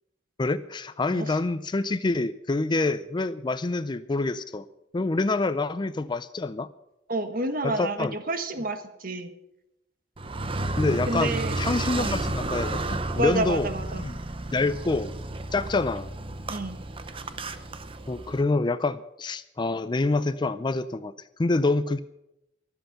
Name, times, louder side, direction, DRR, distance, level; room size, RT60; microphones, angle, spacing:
voice 1, 0.4-4.7 4.9-6.7 7.6-8.2 10.8-13.7 14.0-14.1 14.5-15.1 15.5-16.1 18.1-21.1 21.4-22.0, left 3 dB, 25° left, 14 dB, 0.4 m, -26 dB
voice 2, 7.1-9.3 11.1-11.6 11.9-12.2 13.1-14.0 16.5-16.8, right 2 dB, 45° right, 9 dB, 1.3 m, -29 dB
Car, 10.2-18.4, right 2 dB, 30° right, 0.8 m, -32 dB
23.0 x 7.9 x 5.8 m, 0.88 s
head